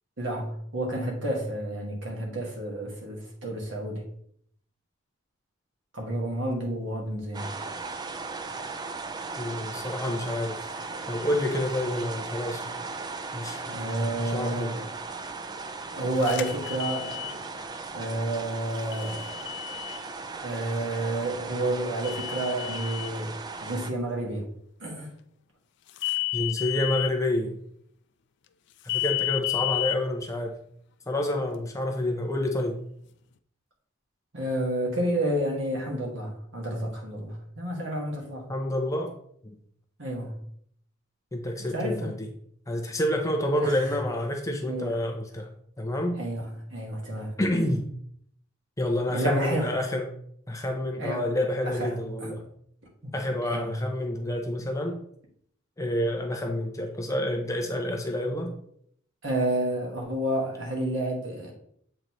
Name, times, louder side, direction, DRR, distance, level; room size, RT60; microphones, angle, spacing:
voice 1, 0.2-4.0 5.9-7.5 13.7-14.9 15.9-17.4 17.9-19.4 20.4-23.3 23.6-24.5 24.8-25.1 34.3-38.4 40.0-40.3 41.7-42.1 43.6-43.8 44.6-45.0 46.2-47.3 49.1-49.7 51.0-51.2 51.6-52.3 53.0-53.1 53.5-53.7 59.2-61.5, right 1 dB, 65° right, -1 dB, 1.7 m, -30 dB
sound 1, 7.3-23.9, right 4 dB, 20° right, 0.3 m, -37 dB
voice 2, 9.4-10.6 11.1-12.6 13.3-13.9 14.2-14.7 26.3-27.6 28.8-30.6 31.1-32.8 38.5-39.1 39.4-39.6 41.3-42.3 42.7-45.5 45.8-46.2 47.4-47.9 48.8-50.1 50.5-52.4 53.1-55.0 55.8-58.5, left 1 dB, 15° left, 3 dB, 0.6 m, -28 dB
sound 2, 16.2-17.3 18.9-20.0 22.0-23.1 26.0-27.1 28.9-30.0, left 22 dB, 60° left, 0.4 m, -31 dB
7.8 x 3.9 x 3.1 m, 0.65 s
head